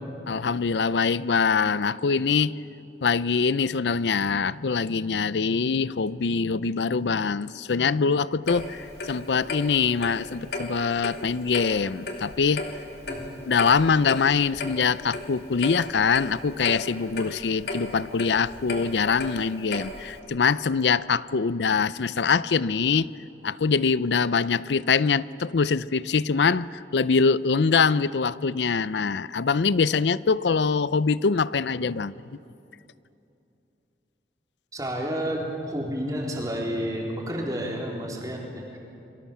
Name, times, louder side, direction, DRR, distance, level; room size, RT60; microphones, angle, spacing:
voice 1, 0.3-2.5 3.0-12.7 13.4-23.1 23.4-32.1, left 5 dB, 85° left, 0.5 m, -24 dB
Clock, 8.5-20.2, left 2 dB, 65° left, 3.0 m, -35 dB
voice 2, 34.7-38.8, equal, 20° right, 3.9 m, -30 dB
29.0 x 24.0 x 7.3 m
head